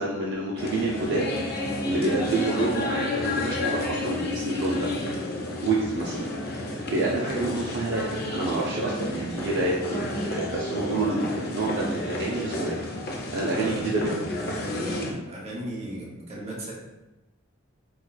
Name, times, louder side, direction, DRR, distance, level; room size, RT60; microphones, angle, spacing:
voice 1, 0.0-1.3 1.8-4.9 5.6-6.3 6.9-8.1 8.3-12.8 13.3-14.1, right 2 dB, 55° right, -4 dB, 0.4 m, -28 dB
sound 1, 0.6-15.1, left 1 dB, 50° left, 0.5 m, -32 dB
sound 2, 2.8-7.8, left 10 dB, 90° left, 0.9 m, -37 dB
voice 2, 13.5-16.7, right 1 dB, 30° right, -4 dB, 0.8 m, -37 dB
4.5 x 2.3 x 2.2 m, 1.0 s
head